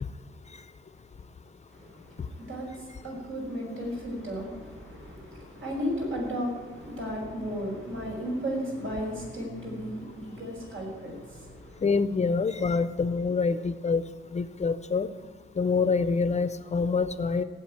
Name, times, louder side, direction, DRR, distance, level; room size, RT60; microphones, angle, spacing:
voice 1, 1.7-11.8, equal, 75° right, -1 dB, 5.9 m, -35 dB
voice 2, 11.8-14.0 14.3-15.1 15.6-17.4, left 4 dB, 35° left, 12 dB, 0.6 m, -26 dB
15.5 x 8.0 x 9.6 m, 1.4 s
wide cardioid pair, 175°, 21 cm